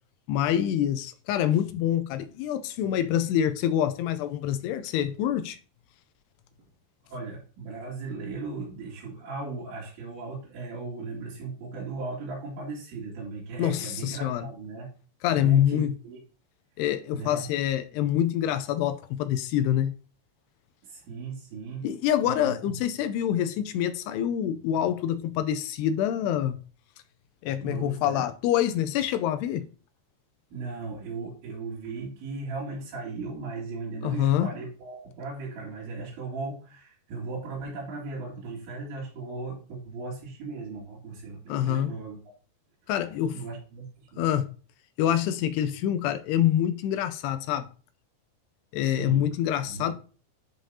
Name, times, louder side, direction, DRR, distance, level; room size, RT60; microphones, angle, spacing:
voice 1, 0.3-5.6 13.6-14.5 15.2-15.9 16.8-19.9 21.8-26.6 27.4-29.7 34.0-34.5 41.5-41.9 42.9-43.4 44.2-44.5 45.0-47.7 48.7-49.9, left 11 dB, 80° left, 2.5 m, -26 dB
voice 2, 7.0-14.9 15.3-16.2 17.1-17.5 20.8-21.9 22.3-22.7 27.6-28.3 30.5-42.2 43.3-44.2 48.8-49.3 49.6-49.9, right 3 dB, 80° right, 4.6 m, -37 dB
11.0 x 5.1 x 2.8 m
omnidirectional pair, 5.1 m